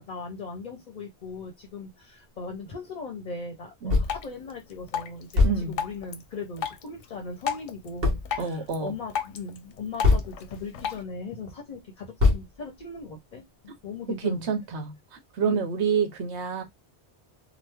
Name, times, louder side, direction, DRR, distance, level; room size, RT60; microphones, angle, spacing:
voice 1, 0.0-14.5 15.5-15.6, left 4 dB, 50° left, 0.6 m, -39 dB
sound 1, 3.9-4.3 4.7-4.8 5.3-6.0 8.0-8.5 10.0-10.7 11.2-11.3 12.2-13.0, left 3 dB, 55° right, 1.3 m, -24 dB
Drip, 4.0-11.0, left 8 dB, 90° left, 0.9 m, -36 dB
voice 2, 5.4-5.7 8.4-8.9 14.2-14.9 15.3-16.6, right 6 dB, 75° right, 1.1 m, -27 dB
2.9 x 2.0 x 3.3 m
omnidirectional pair, 1.2 m